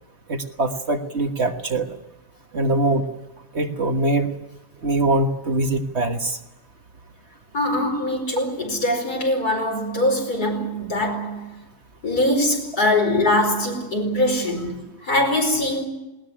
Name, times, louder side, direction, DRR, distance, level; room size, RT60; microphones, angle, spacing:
voice 1, 0.3-1.9 2.5-3.1 3.5-4.3 4.8-6.4, right 2 dB, 45° right, 1.7 m, -22 dB
voice 2, 7.5-11.5 12.0-15.9, left 1 dB, 75° left, 5.5 m, -22 dB
20.0 x 19.5 x 10.0 m
omnidirectional pair, 1.6 m